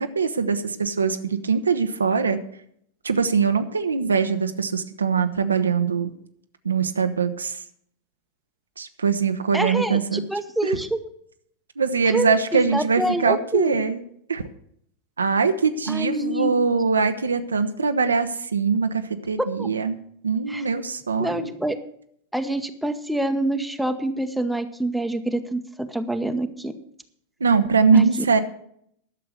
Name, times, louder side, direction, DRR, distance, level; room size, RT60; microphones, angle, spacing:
voice 1, 0.0-2.4 3.0-6.1 6.6-7.6 8.8-10.3 10.6-10.8 11.8-14.0 14.3-14.4 15.2-20.0 20.2-21.5 27.4-28.4, right 5 dB, 75° right, 8 dB, 0.8 m, -22 dB
voice 2, 9.5-11.0 12.1-13.8 15.9-16.6 19.6-19.7 20.5-20.6 21.2-21.8 22.3-26.7 27.9-28.1, right 1 dB, ahead, 7 dB, 0.9 m, -26 dB
11.5 x 6.8 x 7.7 m, 0.68 s
figure-of-eight pair, 90°, 0 cm